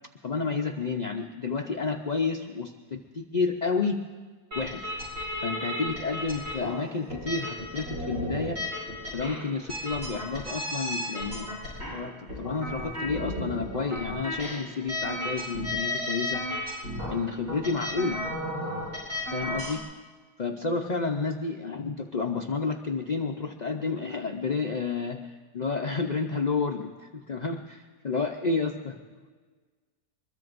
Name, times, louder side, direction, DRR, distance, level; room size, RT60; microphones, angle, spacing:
voice 1, 0.2-4.1 4.6-4.9 5.4-8.6 9.1-11.5 11.9-16.5 17.1-18.2 19.3-19.8 20.4-29.0, left 4 dB, 55° left, 3 dB, 0.5 m, -30 dB
sound 1, 4.5-19.8, left 1 dB, 60° right, 5.3 m, -34 dB
24.0 x 21.5 x 2.6 m, 1.4 s
omnidirectional pair, 1.7 m